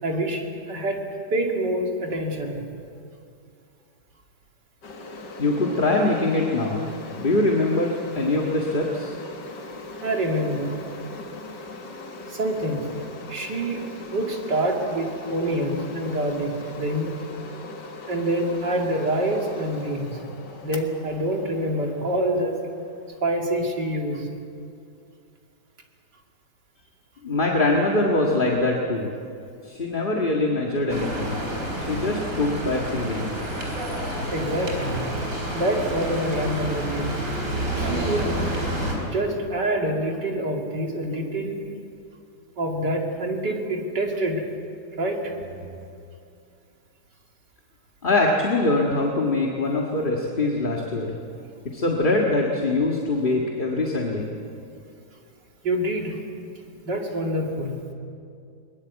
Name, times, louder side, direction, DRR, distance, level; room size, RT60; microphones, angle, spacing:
voice 1, 0.0-2.6 10.0-10.8 12.3-12.9 13.3-13.9 14.1-17.2 18.1-20.2 20.6-22.6 23.2-24.3 34.3-35.1 35.5-37.2 37.8-38.4 39.1-41.6 42.6-44.4 45.0-45.9 55.6-56.2 56.9-57.8, right 1 dB, 65° right, 1 dB, 3.1 m, -26 dB
sound 1, 4.8-23.3, left 3 dB, 65° left, 2.3 m, -40 dB
voice 2, 5.4-6.9 7.2-9.2 27.2-29.1 29.6-31.4 31.9-33.3 48.0-51.2 51.7-54.2, left 2 dB, 30° left, -1 dB, 1.8 m, -23 dB
sound 2, 30.9-39.0, right 1 dB, 45° right, 4.7 m, -29 dB
22.0 x 21.0 x 8.3 m, 2.4 s
omnidirectional pair, 2.0 m